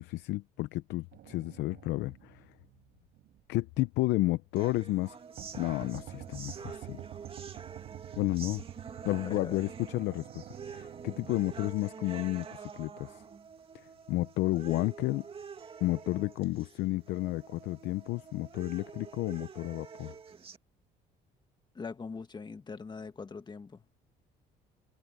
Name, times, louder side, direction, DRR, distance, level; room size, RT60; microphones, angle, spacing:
voice 1, 0.0-2.4 3.5-5.1 5.5-7.0 8.2-8.6 9.0-13.2 14.1-15.2 15.8-20.2, left 18 dB, 85° left, 0.7 m, -32 dB
sound 1, 1.1-3.4 3.8-3.9 5.4-11.6, right 13 dB, 70° right, 5.2 m, -48 dB
sound 2, 4.6-20.6, right 6 dB, 35° right, 2.4 m, -47 dB
voice 2, 9.3-9.6 21.8-23.8, left 4 dB, 25° left, 1.7 m, -42 dB
cardioid pair, 110°, 17 cm